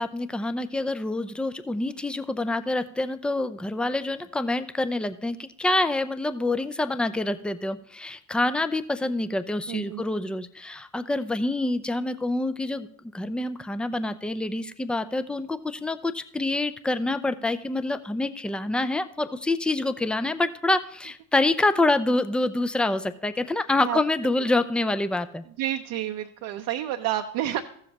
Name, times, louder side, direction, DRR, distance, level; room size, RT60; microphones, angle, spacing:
voice 1, 0.0-12.9 13.1-25.4, left 2 dB, 5° left, 13 dB, 0.4 m, -26 dB
voice 2, 9.7-10.0 23.8-24.0 25.6-27.6, right 12 dB, 60° right, 5 dB, 0.7 m, -29 dB
14.5 x 7.3 x 2.9 m, 0.67 s
hypercardioid pair, 75°, 39 cm